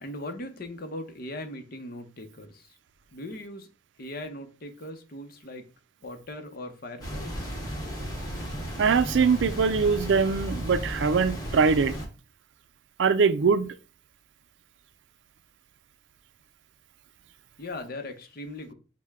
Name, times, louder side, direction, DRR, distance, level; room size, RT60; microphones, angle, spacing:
voice 1, 0.0-2.8 3.1-3.7 4.0-5.6 6.0-7.5 17.6-18.7, left 1 dB, 55° left, 0.7 m, -39 dB
sound 1, 7.0-12.1, equal, 20° left, 1.3 m, -34 dB
voice 2, 8.8-11.9 13.0-13.7, right 5 dB, 80° right, 0.4 m, -22 dB
6.4 x 2.2 x 3.5 m
head